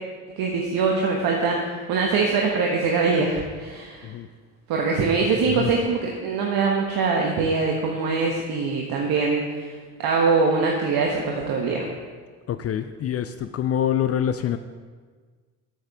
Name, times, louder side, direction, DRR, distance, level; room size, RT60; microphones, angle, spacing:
voice 1, 0.3-4.1 4.7-9.6 10.0-11.9, right 4 dB, 55° right, 0 dB, 1.3 m, -23 dB
voice 2, 12.5-14.6, left 9 dB, 35° left, 10 dB, 0.5 m, -25 dB
14.0 x 6.5 x 3.5 m, 1.5 s
hypercardioid pair, 55°, 42 cm